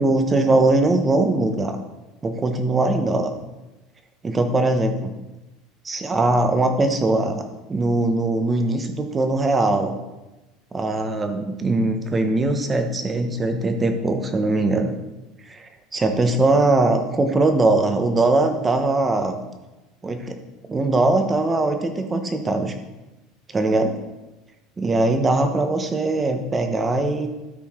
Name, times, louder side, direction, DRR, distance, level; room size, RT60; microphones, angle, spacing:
voice 1, 0.0-1.8 2.2-3.3 4.2-5.1 5.8-7.4 7.7-9.9 10.7-14.9 15.5-19.4 20.0-20.4 20.7-22.7 23.5-23.9 24.8-27.3, right 2 dB, 15° right, 6 dB, 0.9 m, -21 dB
13.0 x 4.6 x 4.4 m, 1.1 s
cardioid pair, 155°, 0 cm